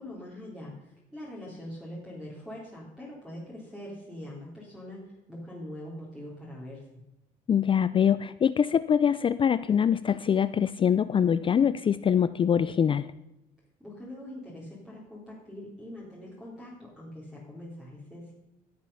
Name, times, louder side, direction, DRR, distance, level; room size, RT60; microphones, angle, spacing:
voice 1, 0.0-7.0 13.8-18.3, left 1 dB, 5° right, -6 dB, 3.7 m, -43 dB
voice 2, 7.5-13.1, left 8 dB, 30° left, 14 dB, 0.4 m, -24 dB
14.0 x 7.5 x 5.6 m, 0.93 s
cardioid pair, 110°, 17 cm